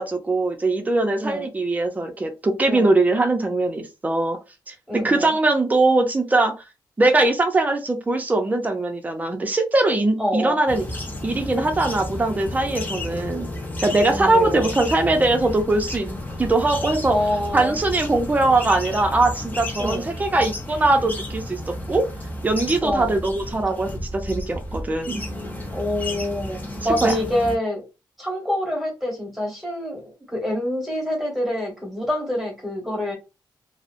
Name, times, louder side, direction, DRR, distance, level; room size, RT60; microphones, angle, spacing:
voice 1, 0.0-4.4 4.7-6.5 7.0-10.9 11.2-13.5 13.8-17.2 17.5-22.0 22.4-25.2 26.8-27.1, right 2 dB, 20° right, 0.5 m, -21 dB
voice 2, 4.9-5.3 10.2-10.6 14.0-14.7 17.1-17.8 19.8-20.1 22.8-23.2 25.7-27.8 28.2-30.0 30.3-33.1, left 1 dB, ahead, 1.1 m, -26 dB
sound 1, 10.7-27.6, left 1 dB, 20° left, 0.6 m, -32 dB
2.7 x 2.0 x 2.5 m
wide cardioid pair, 155°, 8 cm